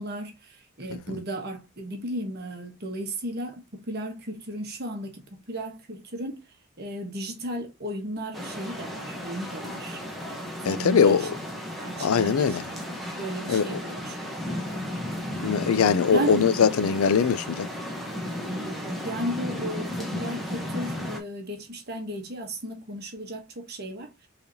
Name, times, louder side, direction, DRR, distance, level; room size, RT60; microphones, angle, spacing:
voice 1, 0.0-5.2 5.5-6.4 6.8-10.0 10.6-11.3 11.8-12.6 13.2-14.9 16.1-16.4 17.0-17.3 18.4-24.1, right 1 dB, 45° right, 1.2 m, -35 dB
sound 1, 8.3-21.2, left 1 dB, ahead, 0.9 m, -34 dB
voice 2, 10.7-11.3 12.0-12.6 13.5-13.8 15.4-17.7, left 6 dB, 75° left, 0.4 m, -21 dB
4.6 x 3.4 x 2.6 m
head